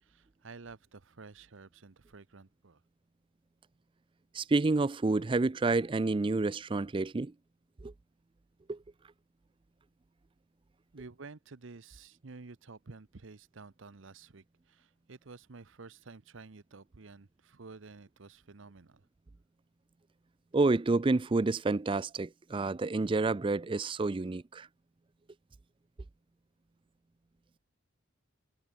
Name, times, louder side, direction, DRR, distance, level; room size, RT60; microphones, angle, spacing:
voice 1, 0.0-2.8 10.9-19.1, right 4 dB, 70° right, 0.8 m, -51 dB
voice 2, 4.3-7.3 7.8-7.9 8.7-8.8 20.5-24.7, right 3 dB, 25° right, 0.4 m, -29 dB
head